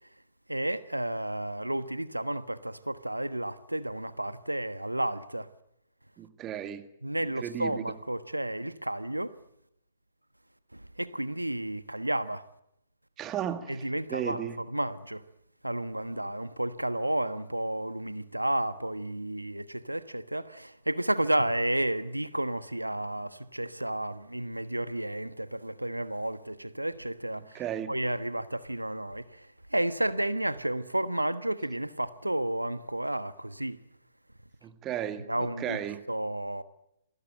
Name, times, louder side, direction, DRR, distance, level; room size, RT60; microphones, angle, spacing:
voice 1, 0.5-5.5 7.0-9.4 10.7-12.5 13.7-15.2 15.6-27.6 27.9-33.8 35.3-35.8 36.1-36.6, right 1 dB, 85° right, 1.3 m, -32 dB
voice 2, 6.2-6.9 7.4-7.8 13.2-14.6 27.5-27.9 34.6-36.0, right 10 dB, 20° right, 2.1 m, -35 dB
28.0 x 21.0 x 9.0 m
figure-of-eight pair, 120°, 0 cm